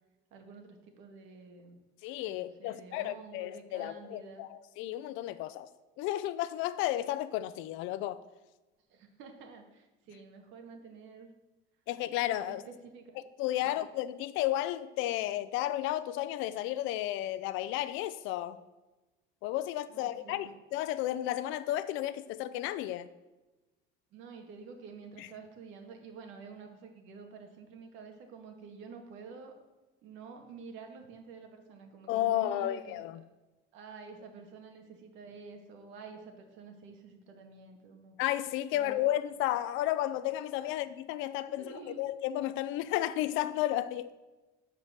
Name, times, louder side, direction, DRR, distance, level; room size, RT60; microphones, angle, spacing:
voice 1, 0.3-1.8 2.3-4.5 8.9-11.3 12.5-13.2 13.6-13.7 19.9-20.5 24.1-29.5 30.0-33.3 33.7-38.2 38.7-39.0 40.6-40.7 41.5-42.1, right 5 dB, 80° right, 2.1 m, -49 dB
voice 2, 2.0-4.5 4.8-5.7 6.0-8.2 11.9-12.6 13.2-18.6 19.4-23.1 25.2-25.3 32.1-33.2 38.2-44.1, left 14 dB, 85° left, 0.6 m, -33 dB
12.5 x 4.9 x 7.4 m
cardioid pair, 160°, 20 cm